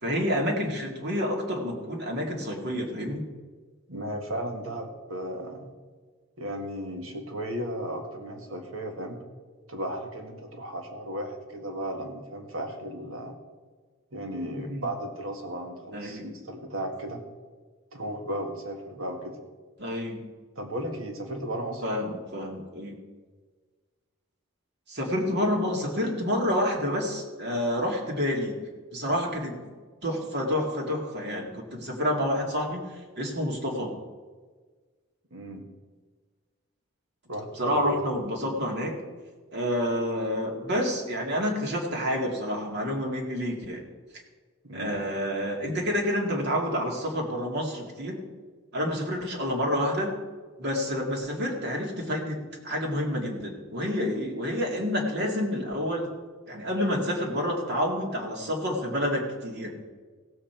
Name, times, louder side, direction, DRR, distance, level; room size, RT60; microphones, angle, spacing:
voice 1, 0.0-3.2 14.6-14.9 15.9-16.2 19.8-20.3 21.8-22.9 24.9-28.6 28.9-29.6 30.0-32.8 33.1-33.9 37.6-39.0 39.5-43.8 44.7-48.2 48.7-50.1 50.6-52.4 52.6-56.1 56.5-59.7, equal, 55° right, 0 dB, 2.2 m, -28 dB
voice 2, 3.9-5.8 6.4-9.2 9.7-13.3 14.1-17.2 17.9-19.4 20.5-21.8 35.3-35.6 37.3-38.0 44.6-45.0, right 1 dB, 75° right, 3 dB, 1.7 m, -35 dB
16.5 x 7.6 x 4.5 m, 1.4 s
head